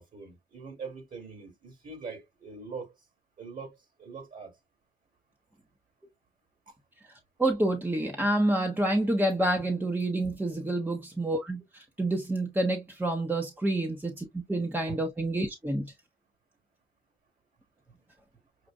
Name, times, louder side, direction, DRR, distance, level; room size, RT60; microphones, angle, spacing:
voice 1, 0.0-2.9 3.4-4.5 14.9-15.0, right 5 dB, 45° right, 2.7 m, -42 dB
voice 2, 7.4-15.9, right 1 dB, 10° right, 0.9 m, -28 dB
6.6 x 2.5 x 2.3 m
cardioid pair, 90°, 20 cm